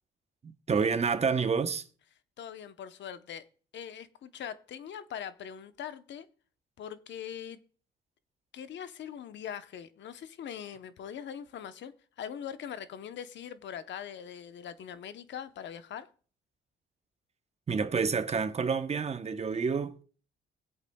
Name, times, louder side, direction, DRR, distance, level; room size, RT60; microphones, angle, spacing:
voice 1, 0.4-1.9 17.7-20.0, right 5 dB, 30° right, 0.9 m, -29 dB
voice 2, 2.4-3.4 3.7-6.3 6.8-7.6 8.5-16.1, left 8 dB, 65° left, 0.9 m, -42 dB
22.5 x 8.1 x 2.3 m
cardioid pair, 90°, 20 cm